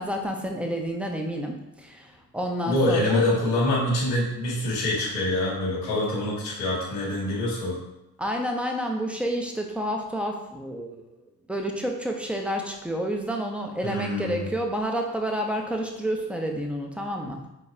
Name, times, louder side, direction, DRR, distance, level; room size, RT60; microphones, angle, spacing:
voice 1, 0.0-3.2 8.2-11.2 11.5-17.5, equal, 5° right, 2 dB, 0.9 m, -29 dB
voice 2, 2.6-7.7 13.8-14.5, left 1 dB, 80° left, -5 dB, 1.4 m, -25 dB
4.7 x 3.9 x 2.8 m, 0.89 s
hypercardioid pair, 45°, 46 cm